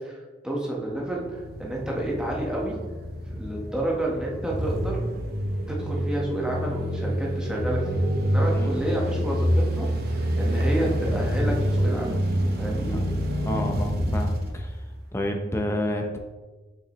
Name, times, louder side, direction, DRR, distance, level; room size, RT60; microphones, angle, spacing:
voice 1, 0.0-2.8 3.3-5.0 5.7-12.3 12.6-13.7, right 1 dB, 5° right, -3 dB, 1.2 m, -30 dB
sound 1, 0.9-15.3, equal, 55° right, 0.9 m, -27 dB
voice 2, 13.4-14.8 15.1-16.2, left 1 dB, 15° left, 3 dB, 0.7 m, -29 dB
6.8 x 5.7 x 3.0 m, 1.3 s
head